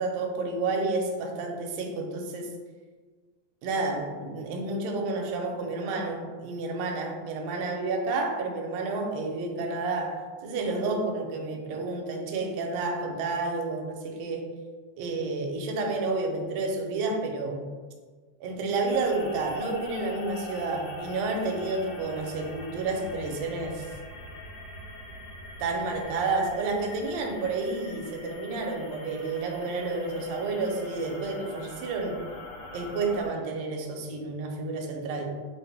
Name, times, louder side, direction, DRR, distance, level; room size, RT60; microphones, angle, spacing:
voice 1, 0.0-2.5 3.6-14.5 15.0-17.6 18.4-23.9 25.6-32.3 32.7-35.4, right 3 dB, 75° right, 1 dB, 1.6 m, -30 dB
sound 1, 18.9-33.3, left 1 dB, 70° left, 1.3 m, -42 dB
6.3 x 2.5 x 3.4 m, 1.4 s
omnidirectional pair, 3.4 m